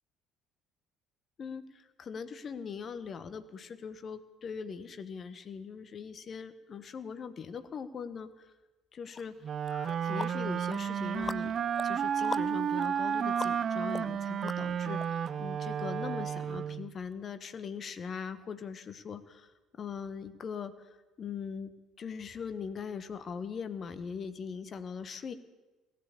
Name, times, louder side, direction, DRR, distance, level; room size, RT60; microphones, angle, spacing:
voice 1, 1.4-8.5 8.9-9.3 9.7-11.5 11.8-25.3, left 6 dB, 35° left, 11 dB, 1.2 m, -41 dB
sound 1, 9.1-9.2 9.7-15.0, left 3 dB, 20° left, 0.6 m, -43 dB
Wind instrument woodwind instrument, 9.4-16.9, right 8 dB, 40° right, 0.5 m, -32 dB
18.0 x 9.7 x 8.3 m, 1.1 s
figure-of-eight pair, 55°, 0 cm